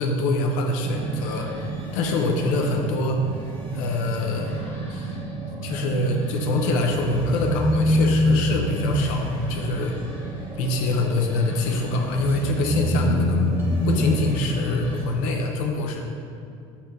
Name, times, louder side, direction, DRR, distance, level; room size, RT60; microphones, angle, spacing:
voice 1, 0.0-3.4 3.7-4.6 4.9-5.2 5.6-10.0 10.6-13.5 13.8-16.0, left 2 dB, 85° left, 2 dB, 0.7 m, -25 dB
sound 1, 0.8-15.1, right 6 dB, 70° right, 0.8 m, -35 dB
sound 2, 0.9-15.0, left 1 dB, 10° left, 1.4 m, -40 dB
sound 3, 6.9-15.2, left 1 dB, 15° right, 0.7 m, -25 dB
5.9 x 4.4 x 5.3 m, 2.5 s
cardioid pair, 170°, 13 cm